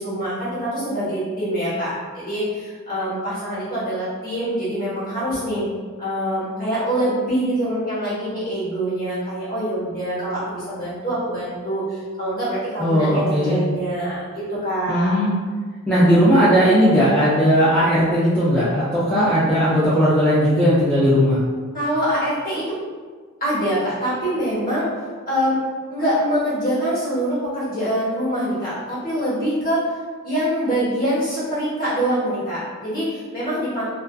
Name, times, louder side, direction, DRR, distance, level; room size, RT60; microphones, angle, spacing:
voice 1, 0.0-5.7 6.0-15.2 21.7-22.8 23.4-24.9 25.3-25.6 25.9-29.8 30.2-33.8, equal, 40° left, -10 dB, 1.1 m, -24 dB
voice 2, 12.8-13.6 14.9-15.4 15.9-21.4, equal, 5° left, -12 dB, 0.4 m, -17 dB
2.4 x 2.3 x 2.2 m, 1.5 s
head